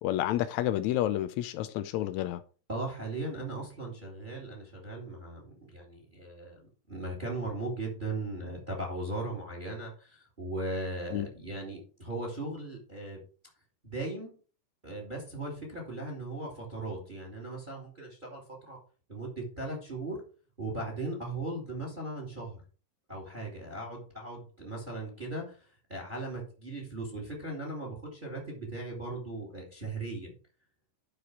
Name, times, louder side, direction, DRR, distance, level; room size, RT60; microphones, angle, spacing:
voice 1, 0.0-2.4 11.1-11.3, left 13 dB, 85° left, 1.6 m, -30 dB
voice 2, 2.7-6.6 6.9-13.2 13.8-14.4 14.8-18.4 18.7-18.8 19.1-20.2 20.6-22.6 23.1-30.3, right 2 dB, 15° right, 2.4 m, -38 dB
11.0 x 5.0 x 4.7 m
omnidirectional pair, 3.8 m